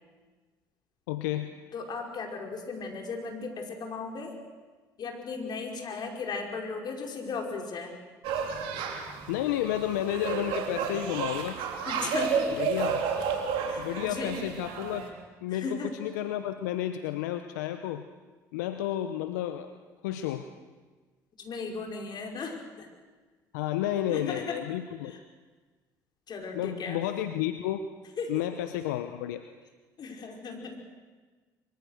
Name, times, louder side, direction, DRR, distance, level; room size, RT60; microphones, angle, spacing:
voice 1, 1.1-1.5 9.3-11.6 12.6-13.1 13.8-15.1 15.4-18.0 18.5-19.8 20.0-20.4 23.5-25.2 26.5-27.9 28.3-29.4, left 12 dB, 80° left, 9 dB, 0.9 m, -31 dB
voice 2, 1.7-4.3 5.0-8.0 11.8-12.5 13.7-14.3 15.5-15.9 21.4-22.9 24.1-24.4 25.0-25.2 26.3-27.0 28.2-28.3 30.0-30.8, left 4 dB, 50° left, 2 dB, 5.1 m, -36 dB
sound 1, 8.2-15.1, right 6 dB, 70° right, 3.4 m, -31 dB
24.0 x 23.0 x 6.6 m, 1.4 s
hypercardioid pair, 60°, 9 cm